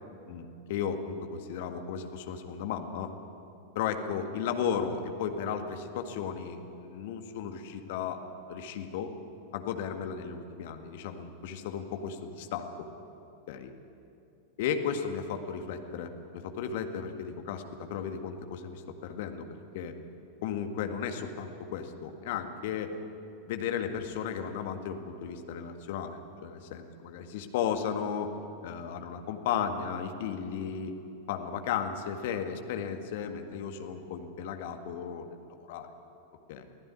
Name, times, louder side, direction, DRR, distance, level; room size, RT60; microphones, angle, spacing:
voice 1, 0.3-3.1 3.8-8.2 8.5-9.1 9.5-12.9 13.5-13.7 14.6-19.5 19.7-19.9 20.4-23.0 23.5-28.4 28.6-30.9 31.3-35.9 36.5-36.6, left 7 dB, 50° left, 6 dB, 1.9 m, -35 dB
23.0 x 15.5 x 9.7 m, 2.7 s
figure-of-eight pair, 90°, 0 cm